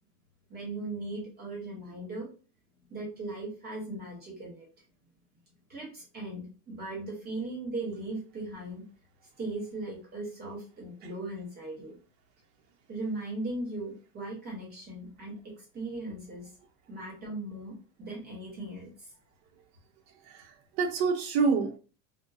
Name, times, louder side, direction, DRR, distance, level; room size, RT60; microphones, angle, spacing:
voice 1, 0.5-2.3 2.9-4.6 5.7-8.8 9.4-12.0 12.9-16.5 16.9-19.1, right 2 dB, 30° right, -2 dB, 1.1 m, -38 dB
voice 2, 20.1-21.8, right 5 dB, 65° right, 2 dB, 0.8 m, -28 dB
3.0 x 2.2 x 2.5 m, 0.37 s
cardioid pair, 150°, 35 cm